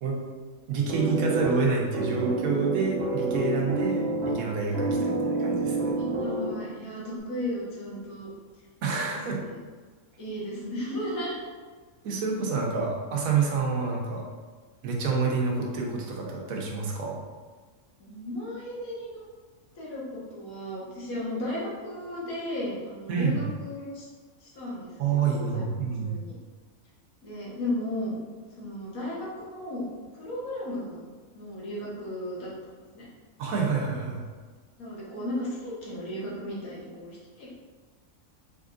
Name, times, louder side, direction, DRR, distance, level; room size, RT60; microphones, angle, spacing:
voice 1, 0.7-5.9 8.8-9.4 12.0-14.3 14.8-17.2 23.1-23.4 25.0-26.2 33.4-34.2, right 4 dB, 80° right, -1 dB, 1.2 m, -28 dB
sound 1, 0.9-6.9, right 2 dB, 60° right, 0.8 m, -29 dB
voice 2, 6.2-8.3 9.1-9.5 10.2-11.4 18.0-19.2 19.7-24.0 24.4-25.6 26.0-26.3 27.2-28.1 28.6-31.0 31.3-33.1 34.8-37.5, left 1 dB, 85° left, -6 dB, 1.7 m, -35 dB
4.2 x 3.6 x 2.5 m, 1.4 s
omnidirectional pair, 1.5 m